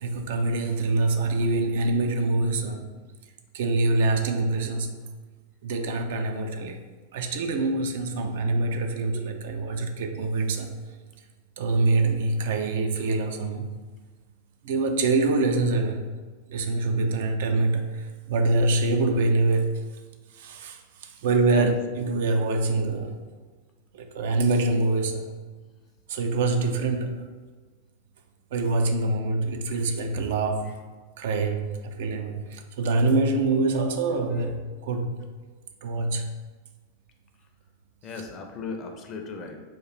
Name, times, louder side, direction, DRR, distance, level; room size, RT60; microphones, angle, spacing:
voice 1, 0.0-2.9 3.5-4.9 5.6-6.8 7.1-10.7 11.6-13.7 14.6-16.1 16.5-19.9 20.3-23.2 23.9-25.3 26.1-27.3 28.5-30.8 31.2-35.2 35.8-36.3, right 2 dB, 55° right, 0.3 m, -25 dB
voice 2, 38.0-39.6, left 4 dB, 30° left, 0.5 m, -36 dB
3.0 x 2.4 x 4.2 m
figure-of-eight pair, 90°, 0 cm